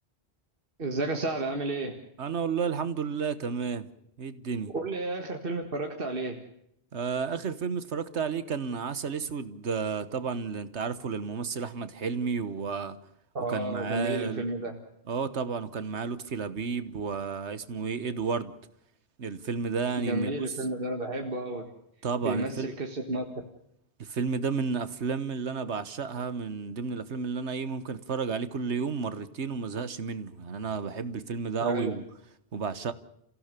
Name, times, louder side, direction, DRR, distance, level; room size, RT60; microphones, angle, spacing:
voice 1, 0.8-2.0 4.7-6.4 13.3-14.8 20.0-21.7 22.2-23.2 31.6-31.9, right 2 dB, 55° right, 2.0 m, -31 dB
voice 2, 2.2-3.9 4.2-4.7 6.9-13.0 13.5-14.4 15.1-18.5 19.2-20.5 22.0-22.7 24.0-32.0 32.5-32.9, right 5 dB, 85° right, 1.6 m, -32 dB
28.5 x 16.0 x 6.8 m
omnidirectional pair, 1.1 m